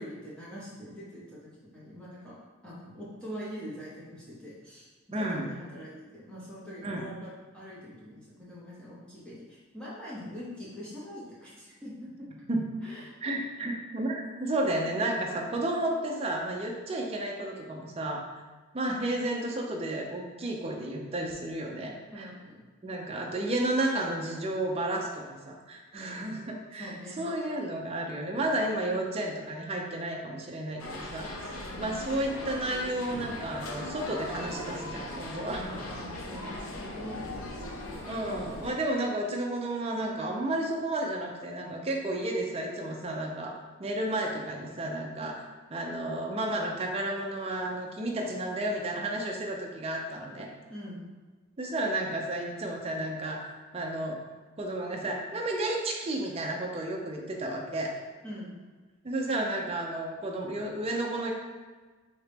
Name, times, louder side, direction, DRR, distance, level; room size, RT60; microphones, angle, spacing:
voice 1, 0.0-2.4 2.6-12.3 12.8-13.1 22.1-22.6 25.9-26.3 26.7-27.2 31.7-31.9 35.5-37.7 50.7-51.1 58.2-58.5, equal, 5° left, -9 dB, 0.8 m, -43 dB
voice 2, 5.1-5.5 6.8-7.1 12.5-12.7 13.2-18.4 18.7-22.3 22.8-26.9 27.2-35.7 38.1-43.5 43.8-45.4 45.7-50.5 51.6-53.4 53.7-54.2 54.6-57.9 59.0-61.3, right 1 dB, 30° right, 0 dB, 0.5 m, -32 dB
sound 1, 30.8-38.7, left 1 dB, 90° left, 0.6 m, -39 dB
4.2 x 2.9 x 3.4 m, 1.3 s
head